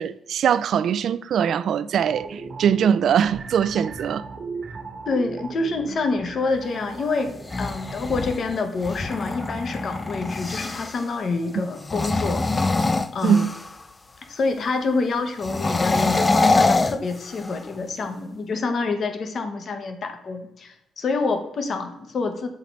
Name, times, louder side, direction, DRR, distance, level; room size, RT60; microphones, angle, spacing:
voice 1, 0.0-4.3 11.6-11.7 13.2-13.5, right 8 dB, 65° right, 0.3 m, -22 dB
sound 1, 2.0-11.3 11.6-11.8, right 4 dB, 45° right, 1.1 m, -39 dB
voice 2, 5.1-12.5 13.1-13.5 14.3-22.5, left 3 dB, 50° left, 0.8 m, -27 dB
sound 2, 7.3-11.0 11.8-13.8 15.4-17.7, left 3 dB, 25° left, 0.4 m, -24 dB
8.1 x 3.9 x 3.2 m
cardioid pair, 90°, 0 cm